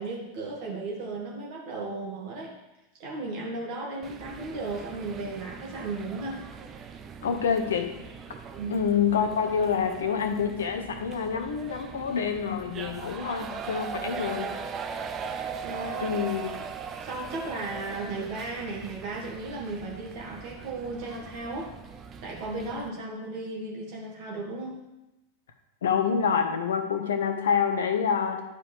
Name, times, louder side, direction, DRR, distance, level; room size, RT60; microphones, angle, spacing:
voice 1, 0.0-2.6 3.0-6.4 8.6-8.8 15.6-16.4 17.0-21.7 22.2-24.8, right 2 dB, 45° right, -3 dB, 2.0 m, -35 dB
sound 1, 4.0-22.9, right 6 dB, 25° right, 0.7 m, -40 dB
voice 2, 7.2-7.9 8.7-14.5 16.0-16.5 25.8-28.4, left 6 dB, 65° left, 7 dB, 0.8 m, -27 dB
11.0 x 4.9 x 3.4 m, 0.96 s
figure-of-eight pair, 90°, 0 cm